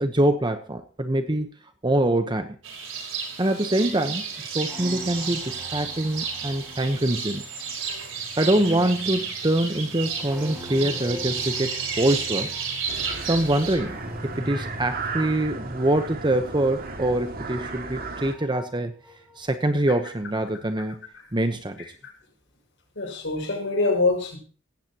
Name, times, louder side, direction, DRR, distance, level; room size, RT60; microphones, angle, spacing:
voice 1, 0.0-1.5 1.8-2.6 3.4-7.4 8.4-12.5 13.2-18.9 19.4-21.0 21.3-21.8, right 1 dB, 25° right, 8 dB, 1.0 m, -24 dB
sound 1, 2.6-13.8, right 6 dB, 70° right, 5.1 m, -32 dB
sound 2, 3.7-19.5 19.8-20.6, equal, 10° right, 5.2 m, -43 dB
sound 3, 12.9-18.4, right 4 dB, 50° right, 2.3 m, -35 dB
voice 2, 22.9-24.4, left 3 dB, 65° left, 1 dB, 6.6 m, -24 dB
18.0 x 16.5 x 3.0 m, 0.41 s
head